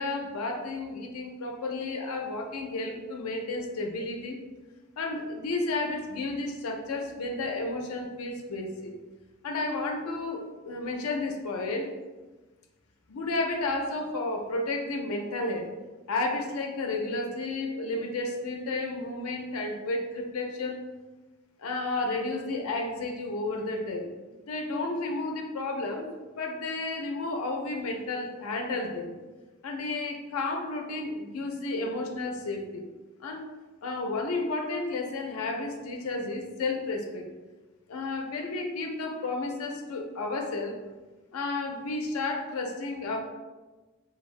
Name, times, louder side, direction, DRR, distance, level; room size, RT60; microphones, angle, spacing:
voice 1, 0.0-4.4 5.0-8.9 9.4-11.9 13.1-15.7 16.1-20.8 21.6-26.1 26.4-29.1 29.6-32.8 33.2-33.4 33.8-37.2 37.9-40.7 41.3-43.2, left 2 dB, 80° left, 2 dB, 0.4 m, -32 dB
2.6 x 2.3 x 3.1 m, 1.2 s
head